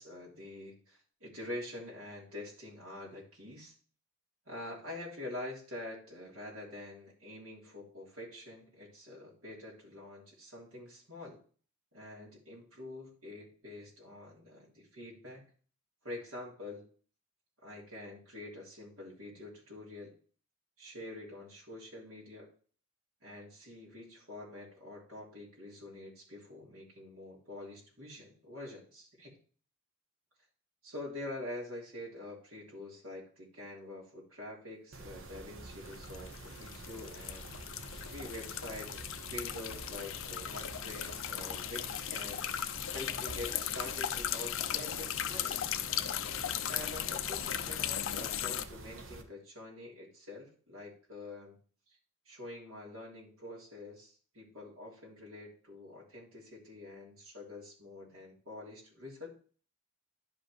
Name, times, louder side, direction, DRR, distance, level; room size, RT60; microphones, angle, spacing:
voice 1, 0.0-3.7 4.5-11.4 11.9-15.4 16.0-16.8 17.6-20.1 20.8-22.5 23.2-29.3 30.8-37.5 38.0-42.4 42.9-45.6 46.7-51.6 52.3-59.3, left 1 dB, 80° right, -4 dB, 3.2 m, -46 dB
Mechanisms, 34.9-49.2, right 2 dB, 65° right, 1.1 m, -48 dB
sound 1, 35.9-48.6, left 10 dB, 65° left, 0.5 m, -37 dB
11.0 x 5.1 x 3.2 m, 0.43 s
head